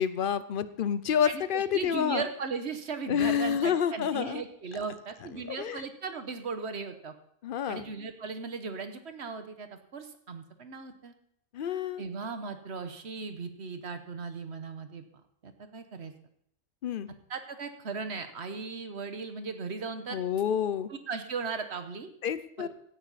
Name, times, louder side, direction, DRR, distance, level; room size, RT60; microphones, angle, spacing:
voice 1, 0.0-2.2 3.1-4.4 5.4-5.8 7.4-7.9 11.5-12.0 16.8-17.1 20.1-20.9 22.2-22.7, left 8 dB, 55° left, 15 dB, 0.7 m, -29 dB
voice 2, 1.5-7.1 7.7-11.1 12.0-15.0 15.4-16.1 17.3-20.2 20.9-22.1 22.6-22.7, right 4 dB, 60° right, 8 dB, 1.3 m, -37 dB
16.5 x 9.6 x 4.1 m, 0.70 s
omnidirectional pair, 1.3 m